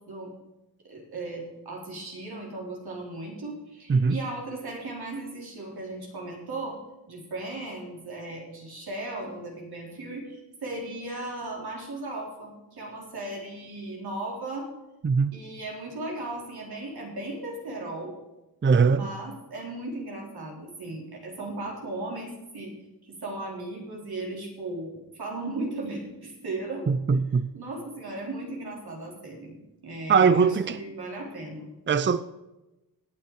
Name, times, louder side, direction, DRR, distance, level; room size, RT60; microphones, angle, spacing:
voice 1, 0.8-6.8 7.1-14.7 15.3-18.1 18.9-22.7 23.0-27.2 27.5-31.7, right 2 dB, 90° right, 4.1 m, -36 dB
voice 2, 18.6-19.1 26.9-27.5 30.1-30.8 31.9-32.2, right 5 dB, 30° right, 0.6 m, -21 dB
17.0 x 9.5 x 4.8 m
wide cardioid pair, 90°, 37 cm